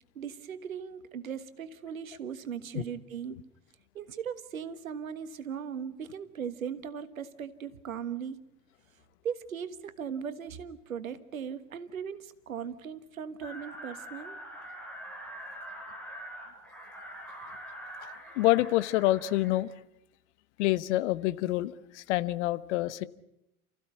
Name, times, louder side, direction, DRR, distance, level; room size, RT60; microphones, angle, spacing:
voice 1, 0.1-3.4 3.9-8.4 9.2-14.4, right 7 dB, 75° right, 1.6 m, -38 dB
sound 1, 13.4-19.6, equal, 5° left, 6.8 m, -44 dB
voice 2, 18.0-19.7 20.6-23.1, left 16 dB, 55° left, 1.2 m, -27 dB
29.5 x 15.5 x 9.7 m
figure-of-eight pair, 80°, 41 cm